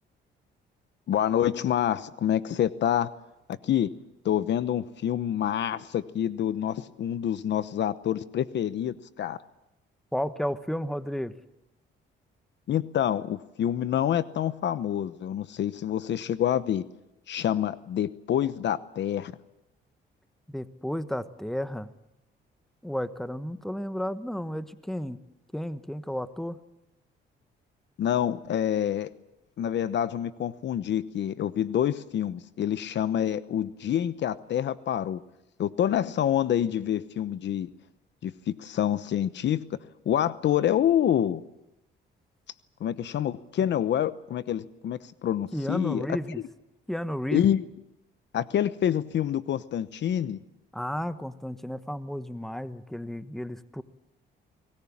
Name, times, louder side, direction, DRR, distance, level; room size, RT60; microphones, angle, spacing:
voice 1, 1.1-3.1 3.5-3.9 4.2-9.4 12.7-16.8 17.3-19.3 28.0-29.1 29.6-35.2 35.6-37.7 38.2-39.6 40.1-41.4 42.8-46.1 47.3-47.6 48.3-50.4, left 10 dB, 65° left, 15 dB, 0.9 m, -27 dB
voice 2, 10.1-11.3 20.5-21.9 22.8-25.2 25.5-26.6 45.5-46.4 46.9-47.5 50.7-53.8, equal, ahead, 12 dB, 1.2 m, -32 dB
23.0 x 19.5 x 8.6 m, 0.91 s
cardioid pair, 90°, 20 cm